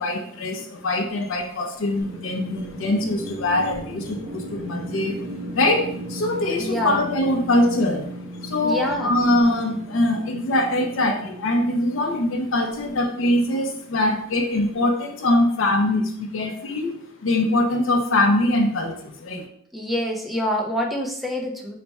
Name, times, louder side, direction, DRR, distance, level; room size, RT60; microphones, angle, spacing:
voice 1, 0.0-19.5, left 1 dB, 65° left, 3 dB, 0.5 m, -23 dB
sound 1, 2.0-14.1, right 1 dB, 80° right, 1.5 m, -37 dB
voice 2, 6.6-7.0 8.6-9.2 19.7-21.7, equal, ahead, 1 dB, 0.4 m, -26 dB
3.2 x 2.2 x 4.1 m, 0.65 s
head